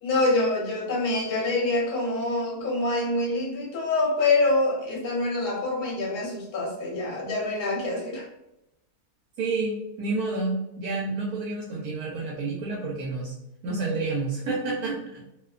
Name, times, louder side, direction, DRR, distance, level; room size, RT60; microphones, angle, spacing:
voice 1, 0.0-8.2, left 2 dB, 50° left, -3 dB, 0.6 m, -25 dB
voice 2, 9.4-13.3 13.6-15.0, right 3 dB, 75° right, -3 dB, 1.0 m, -29 dB
2.6 x 2.1 x 2.3 m, 0.87 s
omnidirectional pair, 1.6 m